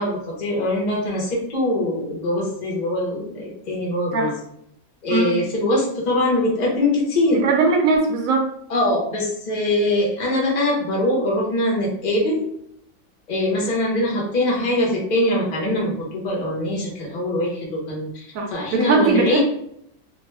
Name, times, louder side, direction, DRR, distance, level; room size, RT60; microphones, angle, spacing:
voice 1, 0.0-4.3 5.0-7.4 8.7-12.4 13.3-18.2 18.5-19.4, left 1 dB, 35° left, -2 dB, 1.0 m, -22 dB
voice 2, 7.3-8.5 18.3-19.4, right 4 dB, 85° right, 1 dB, 1.1 m, -20 dB
2.9 x 2.6 x 3.3 m, 0.73 s
omnidirectional pair, 1.4 m